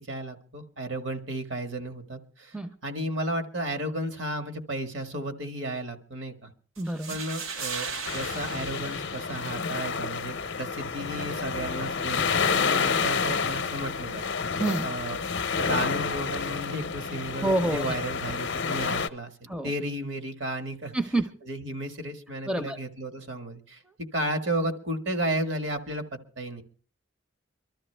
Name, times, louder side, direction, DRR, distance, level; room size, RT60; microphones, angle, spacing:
voice 1, 0.1-6.5 7.1-12.3 12.5-14.2 14.5-15.2 15.6-20.9 21.4-23.8 24.1-26.6, right 1 dB, 65° right, 6 dB, 1.6 m, -33 dB
voice 2, 6.8-7.2 14.6-14.9 17.4-17.8 19.5-19.7 20.9-21.3 22.5-22.8, right 2 dB, 5° right, 8 dB, 0.6 m, -27 dB
sound 1, 6.8-9.8, right 5 dB, 85° right, 1.2 m, -37 dB
sound 2, 8.1-19.1, left 5 dB, 60° left, 0.7 m, -29 dB
24.0 x 13.0 x 3.3 m, 0.41 s
head